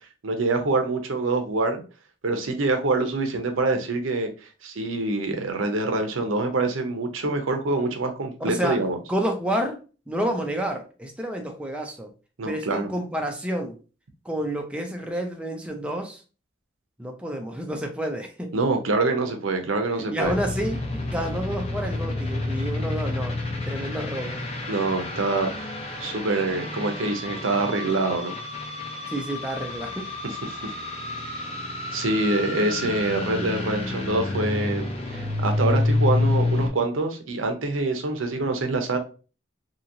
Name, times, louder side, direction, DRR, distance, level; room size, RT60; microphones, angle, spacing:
voice 1, 0.2-1.8 2.2-4.3 4.6-9.0 12.4-12.9 18.5-20.4 24.7-25.7 26.0-28.3 31.9-34.9 35.1-39.0, right 2 dB, 80° right, 5 dB, 0.6 m, -25 dB
voice 2, 8.4-8.8 9.1-9.8 10.1-12.1 12.5-13.7 14.3-16.2 17.0-18.5 19.9-23.4 23.7-24.4 29.1-30.1, equal, 5° right, 2 dB, 0.4 m, -29 dB
sound 1, 20.2-36.7, left 2 dB, 30° left, 0.7 m, -29 dB
2.9 x 2.8 x 2.6 m, 0.34 s
head